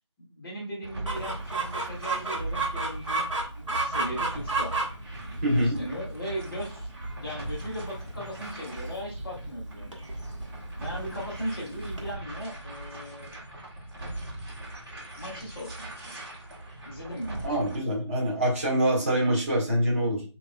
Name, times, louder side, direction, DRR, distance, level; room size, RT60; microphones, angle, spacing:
voice 1, 0.2-3.3 3.6-4.8 5.6-6.9 7.1-9.9 10.8-13.3 15.2-16.1 16.8-17.4, equal, 5° left, -19 dB, 0.7 m, -38 dB
sound 1, 0.8-17.8, right 2 dB, 55° right, 2.1 m, -40 dB
Chicken rooster, 1.1-12.2, right 3 dB, 80° right, 1.6 m, -33 dB
voice 2, 5.4-5.8 17.4-20.2, right 1 dB, 25° right, -5 dB, 1.8 m, -25 dB
6.4 x 3.0 x 2.3 m, 0.36 s
figure-of-eight pair, 170°, 16 cm